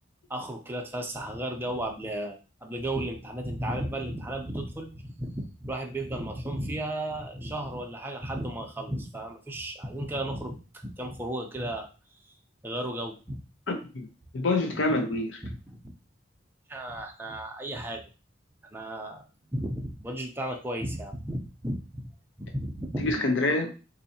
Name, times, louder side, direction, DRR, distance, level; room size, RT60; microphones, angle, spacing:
voice 1, 0.3-11.9 12.6-13.4 15.4-15.8 16.7-18.0 18.7-22.1 22.4-23.1, right 1 dB, 10° right, 0.5 m, -34 dB
voice 2, 13.7-14.1 14.3-15.4 23.0-23.7, left 2 dB, 75° left, 0.6 m, -26 dB
4.1 x 2.7 x 2.7 m
head